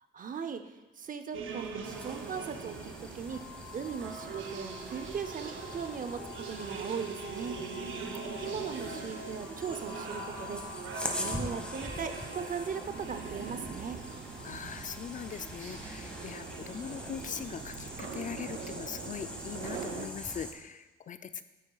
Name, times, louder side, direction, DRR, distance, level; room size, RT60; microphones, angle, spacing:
voice 1, 0.1-3.4 3.7-7.6 8.4-14.0 16.0-16.1, right 6 dB, 45° right, 10 dB, 0.7 m, -39 dB
sound 1, 1.3-20.1, right 6 dB, 85° right, 0.7 m, -42 dB
sound 2, 1.8-20.5, left 1 dB, 5° left, 1.3 m, -44 dB
sound 3, 3.3-18.2, left 8 dB, 85° left, 0.6 m, -49 dB
voice 2, 7.6-8.2 14.4-21.4, left 7 dB, 40° left, 11 dB, 0.4 m, -41 dB
9.1 x 8.8 x 2.4 m, 1.1 s
cardioid pair, 90°, 20 cm